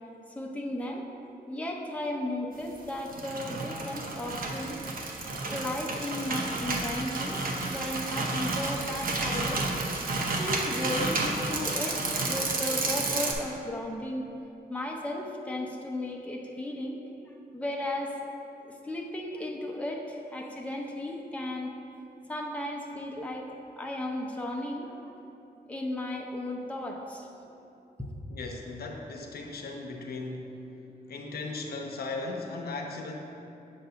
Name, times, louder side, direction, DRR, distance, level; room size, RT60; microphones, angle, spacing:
voice 1, 0.3-1.0 1.5-4.8 5.5-9.8 10.3-14.2 14.7-18.2 18.6-21.7 22.3-23.5 23.8-25.2 25.7-27.3 28.0-28.1, left 1 dB, 10° left, 0 dB, 0.6 m, -35 dB
sound 1, 2.9-13.3, right 3 dB, 60° right, 0.7 m, -31 dB
voice 2, 28.3-30.6 31.1-33.1, left 3 dB, 75° left, 2 dB, 0.7 m, -37 dB
7.8 x 2.6 x 5.7 m, 2.8 s
cardioid pair, 90°, 16 cm